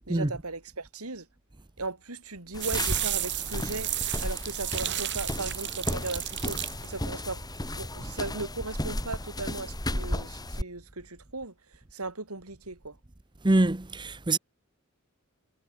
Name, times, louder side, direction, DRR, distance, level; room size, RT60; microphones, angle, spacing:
voice 1, 0.1-1.3 1.8-3.9 4.2-6.6 6.9-7.4 7.8-11.5 11.9-13.0, right 3 dB, 90° right, 3.7 m, -37 dB
sound 1, 2.5-10.6, left 1 dB, 20° left, 6.2 m, -34 dB
sound 2, 2.6-7.8, right 13 dB, 55° right, 4.5 m, -33 dB
voice 2, 13.4-14.4, right 2 dB, 20° right, 0.8 m, -24 dB
head